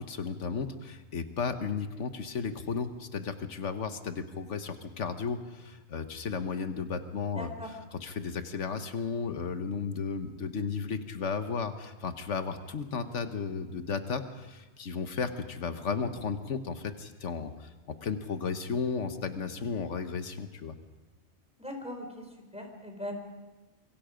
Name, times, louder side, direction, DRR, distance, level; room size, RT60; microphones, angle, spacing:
voice 1, 0.0-7.5 8.0-17.7 18.0-20.7, left 5 dB, 85° left, 8 dB, 1.5 m, -34 dB
voice 2, 7.3-7.8 21.6-23.1, left 1 dB, 5° right, 3 dB, 4.2 m, -40 dB
26.0 x 23.5 x 5.1 m, 1.2 s
omnidirectional pair, 1.2 m